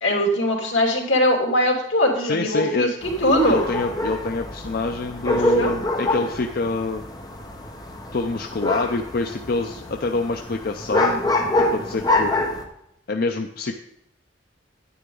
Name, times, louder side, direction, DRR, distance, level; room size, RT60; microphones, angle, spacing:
voice 1, 0.0-3.6 5.2-5.7, left 1 dB, 80° left, 1 dB, 2.8 m, -21 dB
voice 2, 2.2-2.9 3.5-7.0 8.1-11.2 11.7-12.3 13.1-13.7, left 3 dB, 55° left, 5 dB, 0.5 m, -26 dB
sound 1, 3.0-12.6, left 1 dB, 20° left, 1.1 m, -26 dB
9.9 x 9.5 x 3.8 m, 0.79 s
head